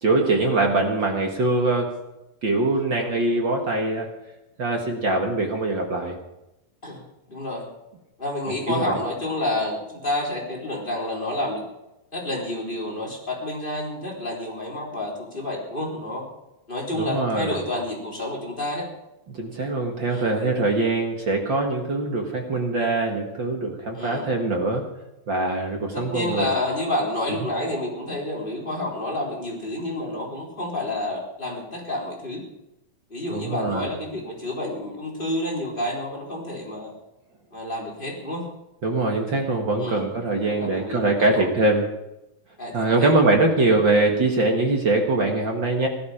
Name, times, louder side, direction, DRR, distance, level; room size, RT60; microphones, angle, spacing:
voice 1, 0.0-1.9 2.4-4.1 4.6-6.1 8.5-9.0 16.9-17.6 19.3-24.9 25.3-26.5 33.3-33.9 38.8-41.8 42.7-45.9, right 2 dB, 45° right, 2 dB, 1.6 m, -23 dB
voice 2, 6.8-7.7 8.2-11.6 12.1-16.2 16.7-18.9 20.1-20.3 23.9-24.3 25.9-32.4 33.1-36.9 37.5-38.5 39.8-40.1 40.5-41.5 42.6-43.1, left 1 dB, 15° left, -2 dB, 3.5 m, -29 dB
17.5 x 13.0 x 5.0 m, 0.92 s
omnidirectional pair, 4.3 m